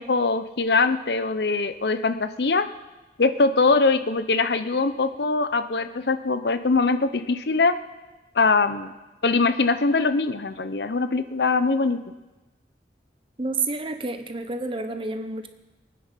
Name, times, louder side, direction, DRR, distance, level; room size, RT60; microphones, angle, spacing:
voice 1, 0.0-2.6 3.2-7.8 8.3-8.9 9.2-12.0, left 3 dB, 70° left, 11 dB, 0.7 m, -22 dB
voice 2, 13.4-15.5, right 3 dB, 30° right, 8 dB, 0.9 m, -29 dB
23.5 x 9.5 x 5.7 m, 1.1 s
head